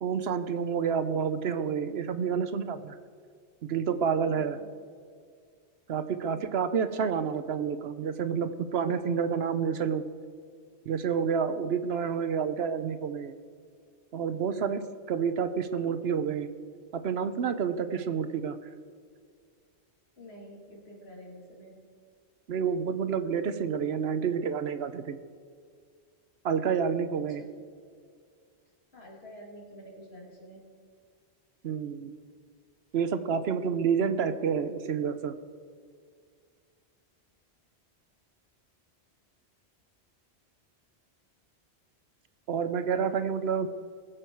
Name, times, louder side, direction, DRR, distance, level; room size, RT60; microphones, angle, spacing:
voice 1, 0.0-3.0 3.6-4.6 5.9-10.0 10.9-13.3 14.1-14.8 15.1-16.5 16.9-18.6 22.5-25.2 26.4-27.4 31.6-32.1 32.9-35.3 42.5-43.7, right 7 dB, 70° right, 11 dB, 1.0 m, -29 dB
voice 2, 4.3-4.7 6.2-6.6 20.2-21.8 27.3-27.5 28.9-30.6, equal, 70° left, -2 dB, 2.8 m, -48 dB
20.0 x 7.8 x 4.6 m, 2.1 s
omnidirectional pair, 1.1 m